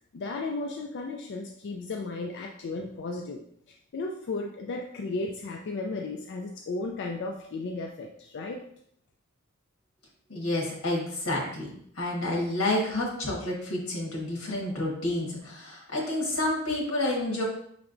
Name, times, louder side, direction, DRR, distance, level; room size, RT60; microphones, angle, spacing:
voice 1, 0.1-3.4 3.9-8.6, left 3 dB, 55° left, 2 dB, 0.4 m, -34 dB
voice 2, 10.3-17.4, left 1 dB, 85° left, -2 dB, 1.4 m, -29 dB
5.8 x 3.2 x 2.5 m, 0.68 s
head